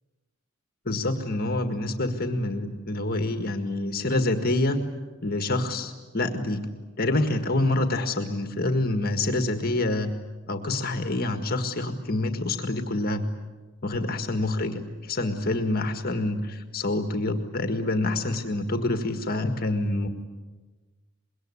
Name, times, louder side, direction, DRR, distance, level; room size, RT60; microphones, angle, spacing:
voice 1, 0.9-4.8 5.2-6.7 7.0-10.1 10.5-13.2 13.8-20.1, left 2 dB, 45° left, 6 dB, 1.8 m, -27 dB
25.5 x 22.0 x 9.8 m, 1.3 s
head